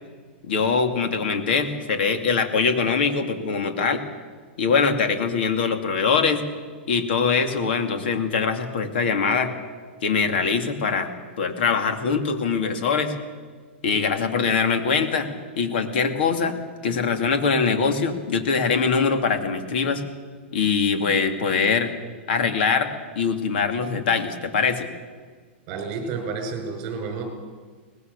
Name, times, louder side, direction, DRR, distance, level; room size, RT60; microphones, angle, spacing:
voice 1, 0.5-4.0 4.6-6.4 6.9-9.5 10.0-11.1 11.4-13.1 13.8-15.3 15.6-16.6 16.8-20.0 20.5-21.9 22.3-22.9 23.2-24.9, left 5 dB, 60° left, 7 dB, 2.7 m, -22 dB
voice 2, 25.7-27.2, right 4 dB, 30° right, 4 dB, 5.2 m, -30 dB
24.0 x 19.0 x 6.8 m, 1.5 s
supercardioid pair, 170°, 6 cm